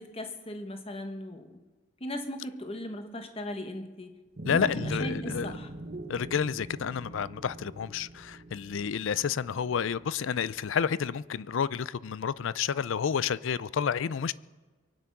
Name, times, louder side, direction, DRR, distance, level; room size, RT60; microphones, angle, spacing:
voice 1, 0.0-1.5 2.0-4.1 4.5-5.7, left 1 dB, 30° left, 1.2 m, -38 dB
voice 2, 4.4-5.5 6.1-14.3, left 7 dB, 70° left, 0.4 m, -30 dB
sound 1, 4.4-10.9, right 2 dB, 45° right, 1.1 m, -41 dB
23.5 x 9.5 x 6.0 m
head